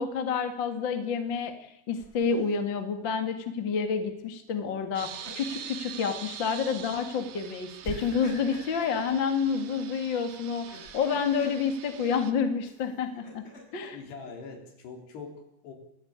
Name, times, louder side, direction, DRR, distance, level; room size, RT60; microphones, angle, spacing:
voice 1, 0.0-1.5 1.9-13.4 13.7-14.0, left 6 dB, 40° left, 6 dB, 1.9 m, -29 dB
Laughter, 2.0-2.5 4.8-5.8 6.2-6.4 7.8-9.0 10.5-11.6 12.6-13.9, left 1 dB, 15° left, 6.3 m, -44 dB
sound 1, 5.0-12.3, right 9 dB, 70° right, 1.8 m, -44 dB
voice 2, 13.9-15.7, left 4 dB, 65° left, 3 dB, 5.9 m, -43 dB
26.0 x 17.0 x 8.9 m, 0.83 s
omnidirectional pair, 5.2 m